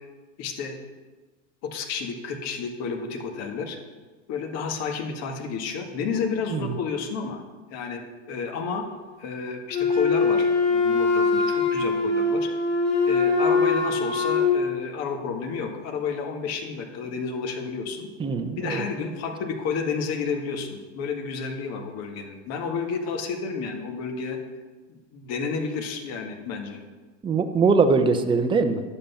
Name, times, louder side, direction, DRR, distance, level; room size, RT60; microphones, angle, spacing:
voice 1, 0.4-0.8 1.6-3.8 4.3-7.4 7.7-8.9 9.2-12.5 13.1-18.1 18.6-24.4 24.9-26.8, left 5 dB, 45° left, 4 dB, 1.8 m, -31 dB
Wind instrument woodwind instrument, 9.7-14.6, left 4 dB, 25° left, 3.5 m, -22 dB
voice 2, 18.2-18.8 27.2-28.8, right 4 dB, 15° right, 7 dB, 0.7 m, -22 dB
10.5 x 8.1 x 5.7 m, 1.3 s
hypercardioid pair, 120°, 37 cm